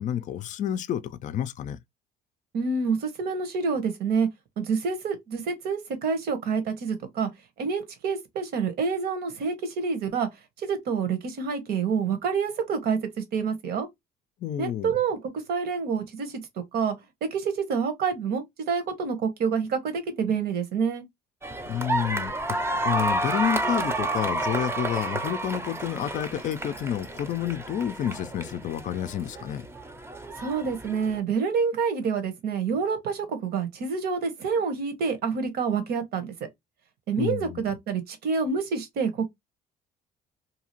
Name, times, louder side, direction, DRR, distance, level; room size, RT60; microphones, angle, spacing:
voice 1, 0.0-1.8 14.4-14.9 21.7-22.6 22.8-29.6 37.2-37.6, left 10 dB, 50° left, 0.4 m, -29 dB
voice 2, 2.5-4.3 4.6-7.3 7.6-10.3 10.6-13.9 14.6-15.2 15.5-16.4 16.7-16.9 17.2-21.0 30.4-36.3 37.1-39.3, right 5 dB, 70° right, 1.1 m, -27 dB
sound 1, 21.4-31.2, right 2 dB, 15° right, 0.6 m, -30 dB
2.8 x 2.4 x 2.9 m
cardioid pair, 110°, 17 cm